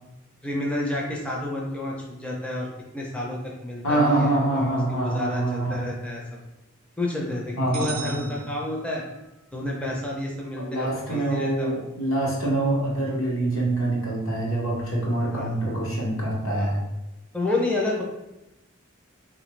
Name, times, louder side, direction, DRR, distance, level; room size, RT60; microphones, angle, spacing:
voice 1, 0.4-2.7 2.9-6.2 7.0-9.0 9.5-11.8 15.3-15.5 16.5-16.7 17.3-18.0, left 1 dB, 5° left, -3 dB, 0.4 m, -30 dB
voice 2, 3.8-5.9 7.6-8.4 10.6-16.8, right 1 dB, 80° left, -3 dB, 1.0 m, -25 dB
sound 1, 7.7-9.3, right 6 dB, 70° right, 0.4 m, -39 dB
3.7 x 2.5 x 3.0 m, 0.96 s
head